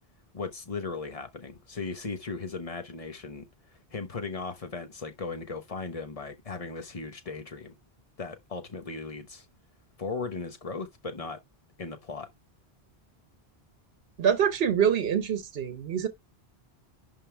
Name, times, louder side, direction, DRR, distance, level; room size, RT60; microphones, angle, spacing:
voice 1, 0.3-3.5 3.9-7.7 8.2-9.5 10.0-11.4 11.8-12.3, left 4 dB, 35° left, 1.0 m, -37 dB
voice 2, 14.2-16.1, right 8 dB, 70° right, 1.1 m, -25 dB
11.0 x 3.7 x 3.4 m
omnidirectional pair, 1.1 m